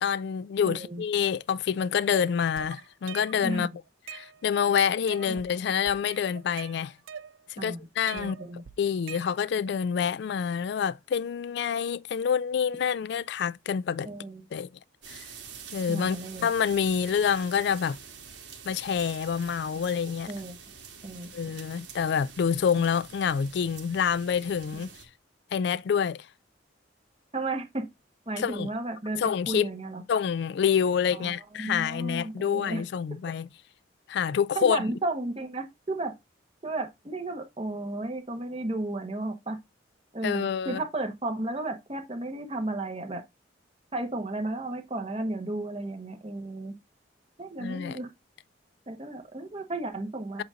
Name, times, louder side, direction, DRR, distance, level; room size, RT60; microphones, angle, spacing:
voice 1, 0.0-3.7 4.1-6.9 7.5-8.4 8.8-14.1 14.5-14.7 15.1-15.2 15.7-16.2 16.4-18.0 18.7-20.3 21.3-24.9 25.5-26.3 28.4-28.7 29.2-29.7 30.1-33.5 34.1-34.8 40.2-40.8 47.6-48.0, left 7 dB, 60° left, 0.3 m, -27 dB
voice 2, 0.7-1.0 3.4-3.7 5.2-5.4 7.6-7.8 8.1-8.6 14.0-14.5 15.9-16.5 20.3-20.6 21.0-21.5 27.3-27.9 28.3-30.0 31.2-32.8 34.5-36.1 36.6-39.6 40.1-43.2 43.9-46.7 47.4-48.1 48.9-50.4, right 2 dB, 30° right, 1.1 m, -33 dB
sound 1, 2.1-3.5 3.9-4.7 5.1-5.5 5.9-7.6 8.1-9.7, right 8 dB, 80° right, 0.5 m, -44 dB
sound 2, 15.0-25.0, right 6 dB, 60° right, 1.5 m, -46 dB
7.8 x 2.7 x 4.9 m
head